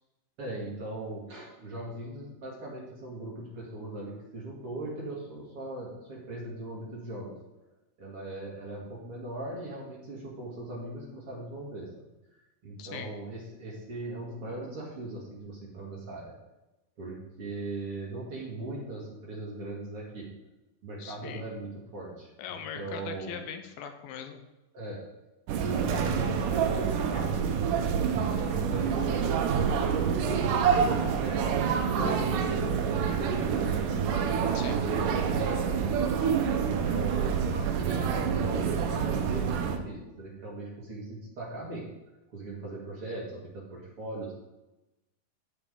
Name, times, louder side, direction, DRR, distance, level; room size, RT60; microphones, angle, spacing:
voice 1, 0.4-7.3 8.0-11.9 12.6-16.3 17.0-20.3 20.8-22.3 22.7-23.4 24.7-25.0 25.5-35.7 36.2-41.9 42.3-44.3, right 2 dB, 45° right, -5 dB, 2.4 m, -39 dB
voice 2, 21.0-21.4 22.4-24.4 34.5-34.8, left 8 dB, 80° left, 7 dB, 2.5 m, -40 dB
sound 1, 25.5-39.8, right 7 dB, 75° right, 2.1 m, -27 dB
14.5 x 5.1 x 3.7 m, 1.0 s
omnidirectional pair, 4.4 m